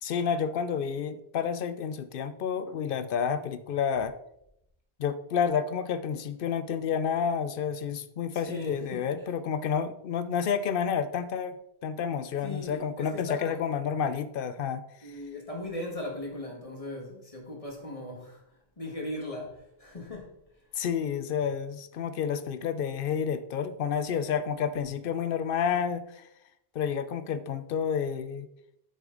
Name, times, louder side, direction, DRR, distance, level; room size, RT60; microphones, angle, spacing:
voice 1, 0.0-4.1 5.0-14.8 20.7-26.3 26.7-28.5, left 7 dB, 65° left, 0.8 m, -30 dB
voice 2, 8.3-9.3 12.4-13.6 15.0-18.4 18.8-20.3, left 1 dB, 35° left, 1.9 m, -38 dB
8.5 x 6.3 x 3.9 m
omnidirectional pair, 1.1 m